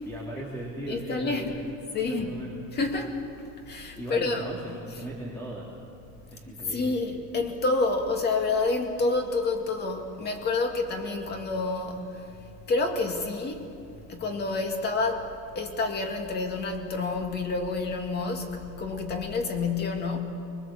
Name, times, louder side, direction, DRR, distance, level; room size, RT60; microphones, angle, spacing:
voice 1, 0.0-1.6 2.1-2.5 4.0-5.7 6.3-6.9, right 1 dB, 10° left, -4 dB, 3.0 m, -37 dB
voice 2, 0.9-1.6 1.9-2.4 2.7-3.2 3.6-4.4 6.6-12.3 12.7-13.7 14.1-15.3 15.5-20.2, left 3 dB, 30° left, 4 dB, 2.4 m, -28 dB
25.5 x 21.5 x 7.7 m, 2.5 s
cardioid pair, 165°, 31 cm